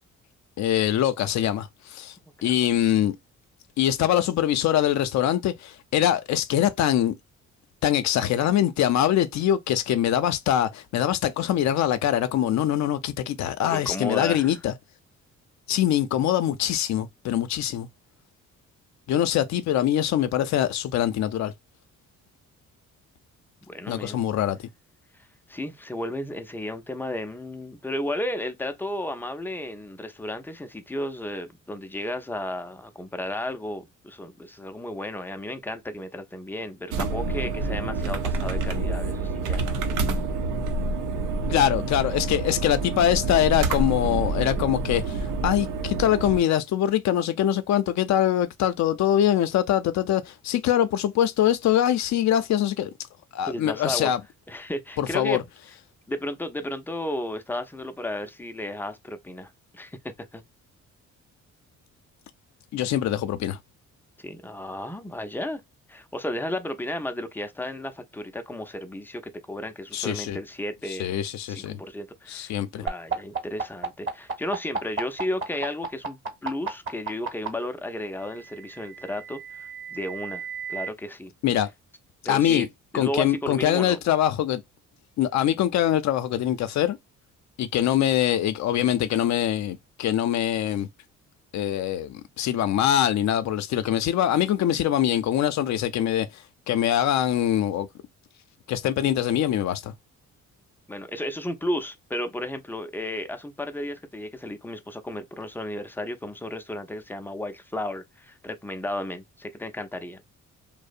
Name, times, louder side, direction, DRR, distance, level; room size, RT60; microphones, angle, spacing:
voice 1, 0.6-2.1 2.4-3.2 3.8-7.1 7.8-14.7 15.7-17.9 19.1-21.5 23.9-24.6 41.5-52.9 53.3-54.2 55.0-55.4 62.7-63.6 69.9-70.4 70.9-71.8 72.3-72.9 81.4-81.7 82.3-82.7 82.9-84.6 85.2-87.0 87.6-90.9 91.5-96.3 96.7-97.9 98.7-99.9, left 11 dB, 65° left, 0.5 m, -23 dB
voice 2, 13.7-14.5 23.6-24.2 25.5-40.0 53.5-54.1 54.5-55.5 56.1-60.0 60.3-60.4 64.2-65.6 65.9-71.2 71.5-81.3 82.2-82.7 82.9-84.0 100.9-110.3, left 1 dB, 5° left, 0.4 m, -33 dB
sound 1, 36.9-46.4, right 3 dB, 85° right, 0.6 m, -27 dB
sound 2, 72.9-77.5 78.6-80.9, right 5 dB, 40° right, 1.0 m, -31 dB
2.7 x 2.0 x 2.4 m
cardioid pair, 90°, 30 cm